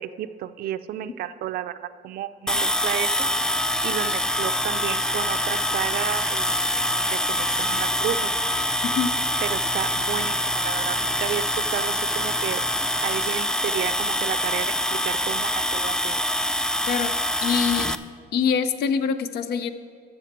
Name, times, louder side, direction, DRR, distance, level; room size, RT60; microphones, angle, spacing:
voice 1, 0.0-1.8 2.0-3.3 3.8-8.3 9.4-12.6 13.0-14.7 15.0-16.2, right 11 dB, 65° right, 12 dB, 0.5 m, -32 dB
sound 1, 2.5-17.9, left 1 dB, 5° left, 0.3 m, -25 dB
sound 2, 3.0-13.3, left 2 dB, 20° left, 0.7 m, -41 dB
voice 2, 8.8-9.1 16.9-17.1 17.4-17.9 18.3-19.7, left 6 dB, 70° left, 11 dB, 0.6 m, -24 dB
14.0 x 6.6 x 4.7 m, 2.1 s
cardioid pair, 110°, 17 cm